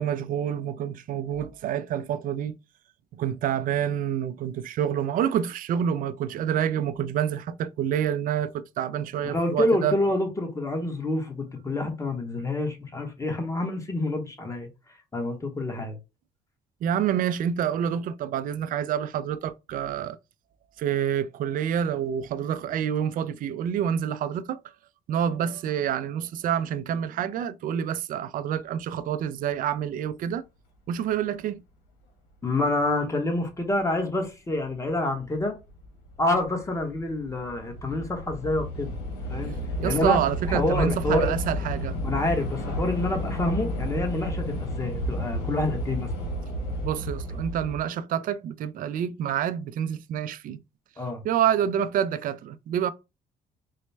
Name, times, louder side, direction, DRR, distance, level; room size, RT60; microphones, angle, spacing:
voice 1, 0.0-2.5 3.1-10.0 16.8-20.2 20.8-24.6 25.1-30.4 30.9-31.6 39.8-42.0 46.8-50.6 51.2-52.9, right 9 dB, 55° right, 0.4 m, -27 dB
voice 2, 9.2-14.7 15.1-16.0 32.4-35.5 36.2-39.0 39.3-39.5 39.8-40.2 40.5-41.3 42.0-46.1 51.0-51.2, left 2 dB, 20° left, 1.0 m, -27 dB
Train / Subway metro underground, 33.8-33.9 34.7-35.0 35.2-47.8, equal, 85° left, 1.2 m, -32 dB
4.1 x 2.1 x 3.2 m
cardioid pair, 110°, 17 cm